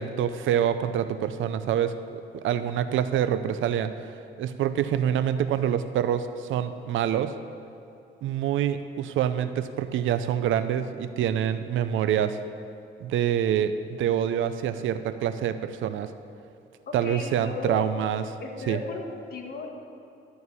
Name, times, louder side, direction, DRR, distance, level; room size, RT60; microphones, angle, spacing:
voice 1, 0.0-3.9 4.4-7.3 8.2-12.4 13.0-16.1 16.9-18.2 18.7-18.8, right 9 dB, 80° right, 11 dB, 0.6 m, -26 dB
voice 2, 16.9-17.9 18.4-19.7, left 3 dB, 50° left, 1 dB, 1.5 m, -35 dB
12.5 x 4.6 x 8.3 m, 2.7 s
cardioid pair, 90°, 20 cm